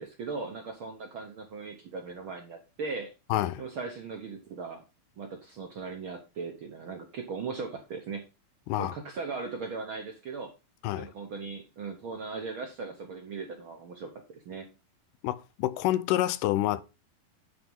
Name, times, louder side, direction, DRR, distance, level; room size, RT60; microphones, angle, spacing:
voice 1, 0.0-3.1 3.6-4.8 5.2-8.2 8.8-10.5 10.9-14.7, right 4 dB, 65° right, 1.3 m, -38 dB
voice 2, 3.3-3.6 8.7-9.0 10.8-11.1 15.2-16.8, left 14 dB, 80° left, 2.1 m, -28 dB
11.0 x 4.3 x 5.4 m
omnidirectional pair, 3.9 m